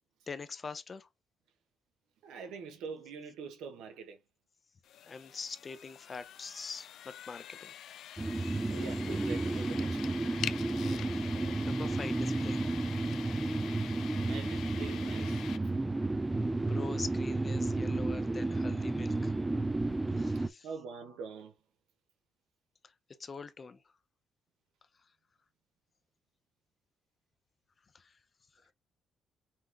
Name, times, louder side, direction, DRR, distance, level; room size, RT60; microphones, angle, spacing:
voice 1, 0.3-1.1 5.0-7.7 8.2-9.0 10.9-11.4 11.6-12.7 16.6-19.4 20.1-20.7 22.8-22.9 23.2-23.8 25.0-25.1 27.9-28.2 28.6-28.7, left 4 dB, 35° left, 0.7 m, -44 dB
voice 2, 2.2-4.2 8.7-10.4 14.2-15.4 20.6-21.5, right 5 dB, 85° right, 1.2 m, -44 dB
sound 1, 4.8-15.6, left 11 dB, 75° left, 0.3 m, -45 dB
sound 2, 8.2-20.5, right 2 dB, 15° right, 0.4 m, -32 dB
5.8 x 2.3 x 3.3 m
cardioid pair, 85°, 0 cm